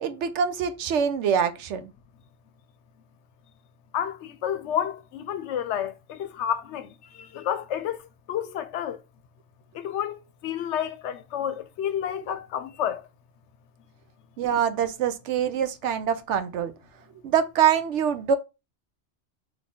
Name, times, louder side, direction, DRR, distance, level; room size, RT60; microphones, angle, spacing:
voice 1, 0.0-1.9 14.4-16.7 17.2-18.4, right 8 dB, 80° right, 0.9 m, -24 dB
voice 2, 3.9-8.0 8.3-9.0 9.7-13.0, left 9 dB, 75° left, 0.9 m, -30 dB
4.0 x 3.2 x 3.6 m
omnidirectional pair, 1.2 m